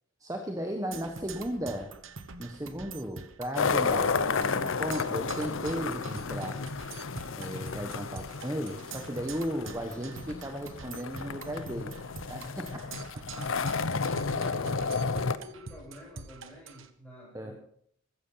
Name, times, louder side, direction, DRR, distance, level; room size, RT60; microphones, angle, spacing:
voice 1, 0.2-1.9 2.4-6.6 7.4-11.9 12.3-12.8 13.1-13.5 14.1-14.2 17.3-17.5, equal, 15° right, 4 dB, 1.3 m, -36 dB
Percussion, 0.9-16.9, right 4 dB, 70° right, 1.2 m, -45 dB
sound 1, 3.6-15.4, left 4 dB, 70° left, 0.7 m, -32 dB
voice 2, 14.3-17.5, left 2 dB, 5° left, -4 dB, 7.7 m, -49 dB
15.0 x 14.0 x 5.7 m, 0.66 s
head